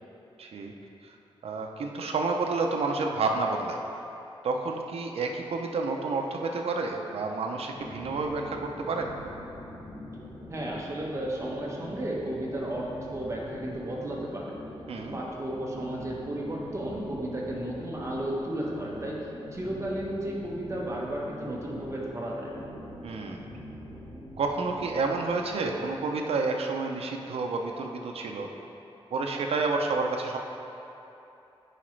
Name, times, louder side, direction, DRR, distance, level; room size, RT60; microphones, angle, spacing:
voice 1, 0.4-0.7 1.0-1.2 1.4-3.8 4.4-9.1 14.9-15.2 23.0-23.4 24.4-28.5 29.1-30.4, right 3 dB, 80° right, 2 dB, 0.5 m, -30 dB
sound 1, 7.7-26.3, left 1 dB, 60° left, 1.1 m, -43 dB
voice 2, 10.5-12.9 13.1-14.5 15.1-19.2 19.5-22.5, right 1 dB, 30° right, -4 dB, 1.0 m, -33 dB
9.8 x 4.9 x 3.2 m, 2.9 s
wide cardioid pair, 140°, 10 cm